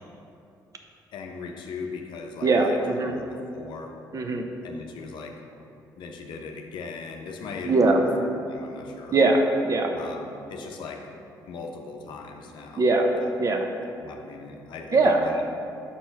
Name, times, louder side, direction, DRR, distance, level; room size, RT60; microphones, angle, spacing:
voice 1, 1.1-4.0 4.6-5.4 6.0-8.1 8.4-9.4 9.9-11.1 11.5-12.8 13.2-13.3 14.0-15.4, left 4 dB, 75° left, 3 dB, 0.7 m, -39 dB
voice 2, 2.4-3.1 4.1-4.4 7.6-8.0 9.1-9.9 12.8-13.1 13.4-13.6 14.9-15.4, right 3 dB, 45° right, 4 dB, 0.7 m, -21 dB
5.8 x 4.4 x 4.6 m, 2.6 s
supercardioid pair, 70°, 8 cm